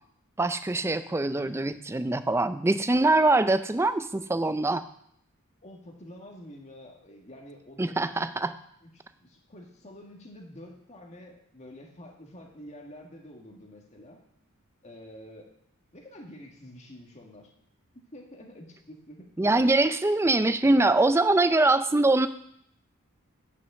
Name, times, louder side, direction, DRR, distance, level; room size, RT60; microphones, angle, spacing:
voice 1, 0.4-4.8 7.8-8.5 19.4-22.3, right 2 dB, 10° right, 12 dB, 0.4 m, -23 dB
voice 2, 5.6-8.3 9.2-14.2 14.8-15.5 15.9-17.5 17.9-19.3, left 1 dB, 30° left, 1 dB, 1.8 m, -47 dB
9.4 x 6.4 x 6.1 m, 0.69 s
head